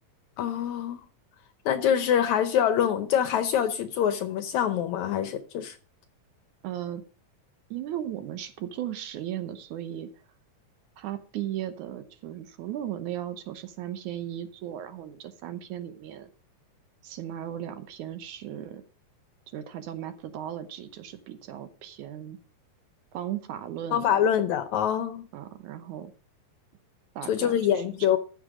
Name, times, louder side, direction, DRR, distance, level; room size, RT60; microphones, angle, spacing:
voice 1, 0.4-1.0 1.7-5.8 23.9-25.3 27.3-28.2, left 9 dB, 70° left, 1.9 m, -25 dB
voice 2, 6.6-7.0 7.7-10.1 11.0-16.3 17.0-18.8 19.5-22.4 23.1-24.2 25.3-26.1 27.2-27.9, right 11 dB, 70° right, 2.2 m, -36 dB
13.5 x 6.6 x 4.9 m
omnidirectional pair, 3.9 m